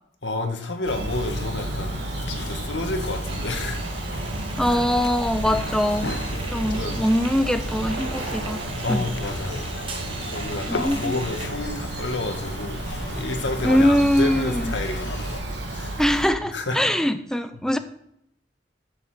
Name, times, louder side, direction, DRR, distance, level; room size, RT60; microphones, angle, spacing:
voice 1, 0.2-2.0 2.3-3.8 4.7-4.8 6.3-7.0 8.8-9.6 10.0-12.8 13.1-15.2 15.7-16.0 16.5-16.8, left 2 dB, 90° left, 5 dB, 1.7 m, -30 dB
Bird vocalization bird call bird song, 0.8-16.3, right 1 dB, 85° right, 2.3 m, -31 dB
sound 1, 1.1-15.4, left 3 dB, 70° left, 1.1 m, -38 dB
sound 2, 3.3-11.5, right 4 dB, 30° right, 1.6 m, -40 dB
voice 2, 4.6-6.2 6.5-8.6 8.9-9.1 10.7-11.2 13.6-14.7 16.0-17.8, equal, 5° left, 10 dB, 0.5 m, -22 dB
13.5 x 7.1 x 5.0 m, 0.72 s
head